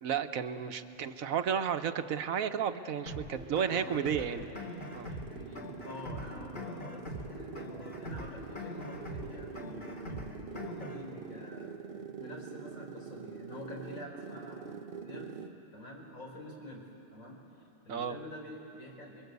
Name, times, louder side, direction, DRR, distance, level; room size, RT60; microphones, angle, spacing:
voice 1, 0.0-4.5 4.9-5.1 17.9-18.2, right 7 dB, 90° right, 9 dB, 1.4 m, -32 dB
sound 1, 3.1-11.1, left 1 dB, 45° left, 3.2 m, -42 dB
voice 2, 3.6-4.5 5.1-15.4 15.7-16.9 17.1-17.4 17.8-19.2, left 1 dB, 85° left, -1 dB, 5.2 m, -47 dB
sound 2, 3.9-15.6, right 6 dB, 45° right, 0.9 m, -46 dB
29.5 x 23.0 x 8.2 m, 2.7 s
omnidirectional pair, 1.4 m